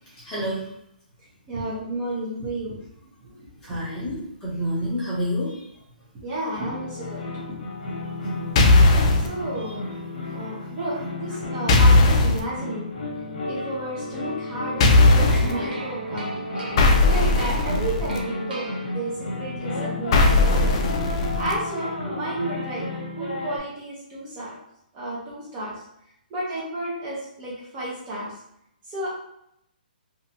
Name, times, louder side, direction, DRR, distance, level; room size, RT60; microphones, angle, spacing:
voice 1, 0.1-0.7 3.6-5.7 8.2-8.5 9.2-9.3 9.6-9.7 10.3-10.4, equal, 10° left, -8 dB, 0.9 m, -29 dB
voice 2, 1.5-2.8 3.2-3.4 3.6-3.8 4.0-4.1 6.2-7.2 9.2-9.8 10.3-12.9 13.4-16.4 16.6-20.7 21.4-22.8 23.2-24.5 24.9-25.8 26.3-28.3 28.9-29.1, right 1 dB, 20° right, -7 dB, 0.8 m, -32 dB
sound 1, 6.5-23.6, left 2 dB, 65° left, 0.9 m, -33 dB
sound 2, 8.6-9.3 11.7-12.4 14.8-15.5 16.8-18.2 20.1-21.5, left 2 dB, 35° left, 0.4 m, -17 dB
sound 3, 15.3-19.4, right 2 dB, 75° right, 1.0 m, -36 dB
2.7 x 2.3 x 2.8 m, 0.76 s
hypercardioid pair, 160°, 5 cm